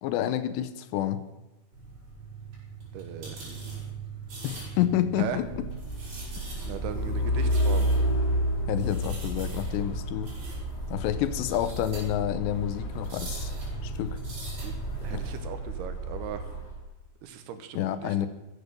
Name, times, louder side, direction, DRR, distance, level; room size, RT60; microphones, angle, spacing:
voice 1, 0.0-1.2 4.4-5.7 8.7-10.3 10.9-13.5 13.8-14.2 15.1-15.3 17.7-18.3, left 11 dB, 80° left, 12 dB, 2.9 m, -29 dB
sound 1, 1.7-15.4, right 3 dB, 45° right, 5.9 m, -42 dB
voice 2, 2.9-3.4 5.2-5.4 6.7-7.9 14.6-14.8 15.0-16.5 17.2-18.3, right 8 dB, 75° right, 9 dB, 2.7 m, -38 dB
Truck, 5.5-16.8, equal, 45° left, 2.9 m, -31 dB
14.5 x 8.5 x 6.7 m, 1.1 s
omnidirectional pair, 5.0 m